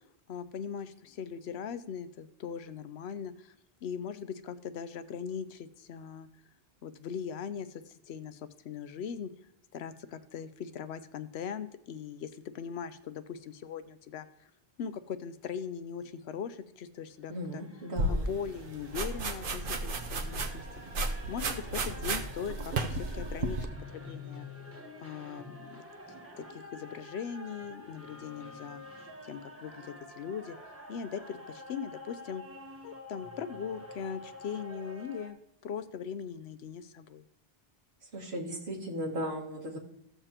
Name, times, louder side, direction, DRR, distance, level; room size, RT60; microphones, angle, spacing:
voice 1, 0.3-3.5 3.8-6.3 6.8-9.3 9.7-14.3 14.8-17.6 18.1-20.6 21.3-24.5 25.0-25.8 26.4-30.6 30.9-32.4 32.8-35.4 35.6-37.2, left 7 dB, 90° left, 12 dB, 0.9 m, -40 dB
sound 1, 17.1-35.3, left 2 dB, 15° right, 1.1 m, -48 dB
voice 2, 17.3-18.3 38.1-39.8, equal, 85° right, -2 dB, 1.9 m, -36 dB
sound 2, 18.0-23.7, right 2 dB, 60° right, 1.0 m, -33 dB
15.5 x 6.8 x 2.9 m, 0.79 s
omnidirectional pair, 1.0 m